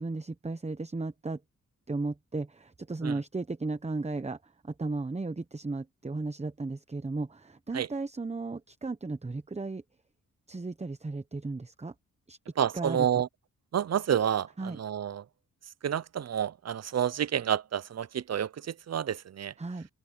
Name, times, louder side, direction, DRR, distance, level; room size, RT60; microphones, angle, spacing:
voice 1, 0.0-1.4 1.9-9.8 10.5-11.9 12.3-12.4 12.7-13.2 14.6-14.8 19.6-19.9, right 3 dB, 20° right, 1.0 m, -35 dB
voice 2, 12.6-13.3 13.7-15.2 15.8-19.5, right 9 dB, 50° right, 0.6 m, -29 dB
open air
cardioid pair, 70°, 32 cm